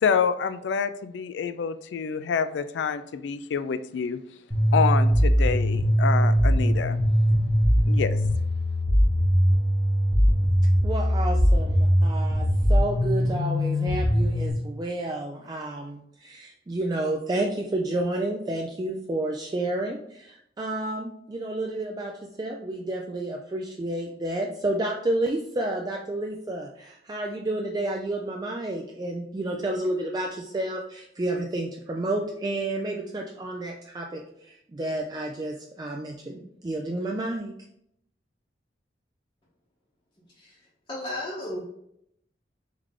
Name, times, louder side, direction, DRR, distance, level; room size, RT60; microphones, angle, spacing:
voice 1, 0.0-4.2 4.7-7.0 7.9-8.2, left 6 dB, 75° left, 12 dB, 0.3 m, -27 dB
sound 1, 4.5-14.5, equal, ahead, 1.0 m, -21 dB
voice 2, 10.8-22.1 22.4-34.2 34.7-37.5, right 2 dB, 20° right, 1 dB, 0.3 m, -30 dB
voice 3, 40.9-41.6, left 1 dB, 25° left, -7 dB, 0.8 m, -33 dB
3.6 x 3.3 x 3.5 m, 0.75 s
head